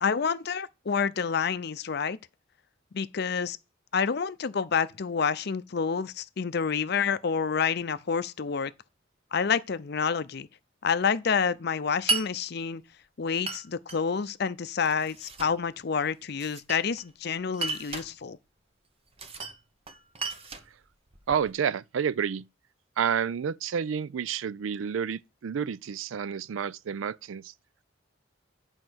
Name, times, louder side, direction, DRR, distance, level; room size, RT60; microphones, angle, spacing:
voice 1, 0.0-2.2 2.9-3.6 3.9-8.7 9.3-10.5 10.8-12.8 13.2-18.4, left 6 dB, 55° left, 0.5 m, -28 dB
Glass, 12.1-12.3 13.5-14.0 14.8-15.6 16.4-17.1 17.5-18.1 19.2-19.6 19.9-21.5, right 3 dB, 30° right, 0.9 m, -34 dB
voice 2, 21.3-22.5 23.0-27.5, right 7 dB, 85° right, 0.4 m, -30 dB
8.7 x 4.5 x 6.2 m
head